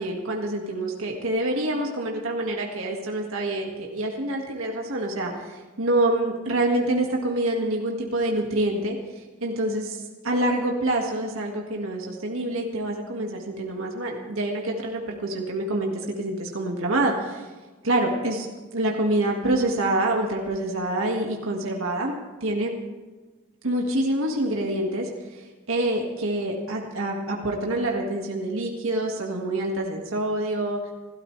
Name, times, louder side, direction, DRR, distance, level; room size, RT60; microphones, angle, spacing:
voice 1, 0.0-17.5 17.8-18.5 18.7-22.7 23.6-30.8, right 1 dB, 75° right, 0 dB, 1.9 m, -26 dB
28.5 x 13.0 x 3.3 m, 1.3 s
head